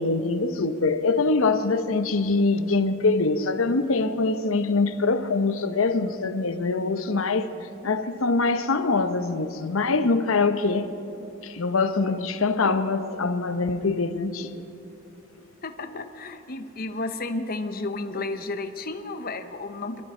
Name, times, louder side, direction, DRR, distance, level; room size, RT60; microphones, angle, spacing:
voice 1, 0.0-7.5 7.8-10.9 11.4-14.5 15.9-16.0 18.1-18.2, left 3 dB, 70° left, 0.8 m, -24 dB
voice 2, 15.6-20.0, left 2 dB, 45° left, 0.9 m, -32 dB
24.5 x 13.5 x 4.4 m
head